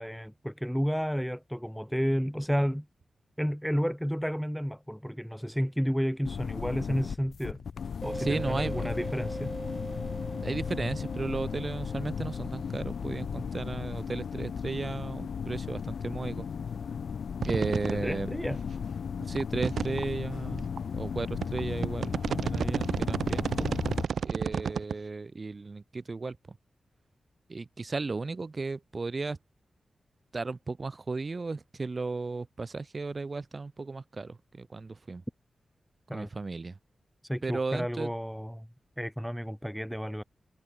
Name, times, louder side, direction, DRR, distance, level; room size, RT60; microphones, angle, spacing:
voice 1, 0.0-2.9 3.4-7.6 8.0-9.5 17.9-18.6 36.1-36.3 37.2-38.7 39.0-40.2, equal, ahead, 0.5 m, -31 dB
sound 1, 6.2-24.1, left 6 dB, 75° left, 2.6 m, -36 dB
sound 2, 8.0-13.3, right 2 dB, 20° right, 5.4 m, -41 dB
voice 2, 8.2-8.9 10.4-16.4 17.4-18.3 19.3-23.8 24.2-26.6 27.5-29.4 30.3-35.2 36.1-36.8 37.4-38.1, right 3 dB, 35° right, 2.4 m, -35 dB
sound 3, 17.4-17.9 18.4-18.5 19.3-20.0 20.8-20.9 21.4-24.9, right 7 dB, 80° right, 0.3 m, -30 dB
wide cardioid pair, 145°, 0 cm